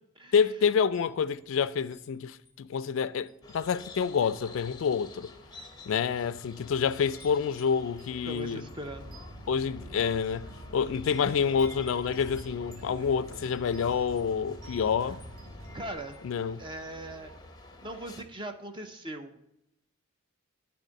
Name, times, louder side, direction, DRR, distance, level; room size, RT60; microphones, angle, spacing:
voice 1, 0.3-5.3 5.9-8.6 9.5-15.2 16.2-16.6, left 6 dB, 60° left, 0.3 m, -28 dB
Wind chime, 0.8-2.1 2.5-2.7 3.3-4.0 4.3-4.6 5.3-5.4 6.1-6.5 6.8-16.3, equal, 40° right, 2.5 m, -56 dB
sound 1, 3.4-18.2, left 3 dB, 20° left, 0.6 m, -49 dB
voice 2, 8.2-9.2 15.7-16.2 16.6-17.3 17.8-19.4, right 1 dB, 20° right, 0.5 m, -40 dB
sound 2, 8.7-15.9, equal, 60° right, 2.3 m, -46 dB
9.1 x 3.5 x 6.3 m
head